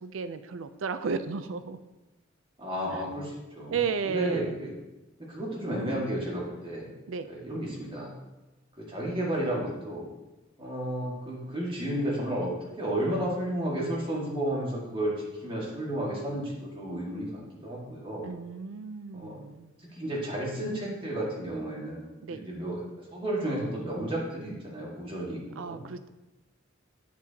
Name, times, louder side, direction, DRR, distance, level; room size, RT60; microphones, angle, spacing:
voice 1, 0.0-1.8 2.9-3.0 3.7-4.6 7.1-7.3 18.2-19.7 22.2-22.4 25.6-26.1, right 5 dB, 90° right, 11 dB, 0.5 m, -33 dB
voice 2, 2.6-3.8 4.0-4.7 5.3-6.9 7.3-8.1 8.8-10.1 10.6-18.3 19.1-19.4 19.9-22.8 23.1-25.8, right 1 dB, 25° right, -4 dB, 1.9 m, -32 dB
9.1 x 6.0 x 2.9 m, 1.1 s
head